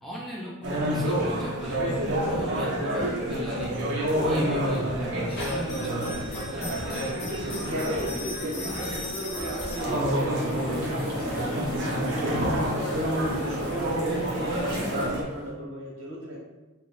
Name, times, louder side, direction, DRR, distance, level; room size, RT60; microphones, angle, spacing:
voice 1, 0.0-1.9 2.3-3.7 4.2-7.2, equal, ahead, -6 dB, 0.5 m, -38 dB
sound 1, 0.6-15.2, right 1 dB, 50° right, 0.6 m, -29 dB
voice 2, 3.3-4.8 5.8-6.2 7.2-16.4, right 1 dB, 70° right, -3 dB, 0.8 m, -36 dB
sound 2, 5.3-15.5, left 2 dB, 50° left, 0.6 m, -41 dB
sound 3, 9.8-15.1, left 1 dB, 25° left, 1.0 m, -35 dB
2.5 x 2.0 x 3.9 m, 1.1 s
head